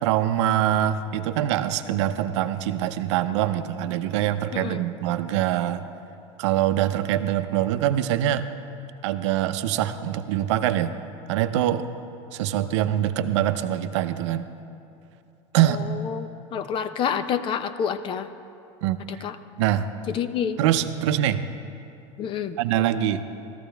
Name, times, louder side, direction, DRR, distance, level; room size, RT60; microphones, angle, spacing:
voice 1, 0.0-5.8 6.4-8.5 9.0-11.0 11.3-11.9 12.3-14.4 15.5-15.8 18.8-19.2 19.6-19.9 20.6-21.5 22.6-23.2, right 11 dB, 70° right, 10 dB, 0.6 m, -24 dB
voice 2, 4.5-4.8 15.7-18.3 19.1-19.4 20.1-20.6 22.2-22.6, left 8 dB, 35° left, 11 dB, 0.5 m, -28 dB
14.5 x 13.5 x 3.4 m, 2.7 s
supercardioid pair, 130°, 16 cm